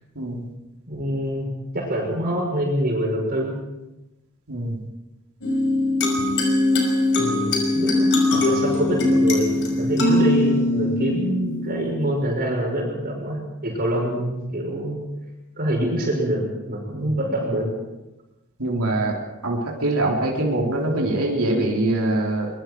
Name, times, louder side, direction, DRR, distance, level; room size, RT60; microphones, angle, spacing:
voice 1, 0.2-0.5 4.5-4.8 17.0-17.1 18.6-22.5, right 2 dB, 75° right, -2 dB, 3.6 m, -23 dB
voice 2, 0.9-1.5 1.7-3.5 7.2-15.0 15.6-17.7, right 1 dB, 45° right, -1 dB, 6.2 m, -25 dB
sound 1, 5.4-12.4, left 2 dB, 60° left, 5.5 m, -21 dB
24.0 x 22.5 x 4.7 m, 1.0 s
head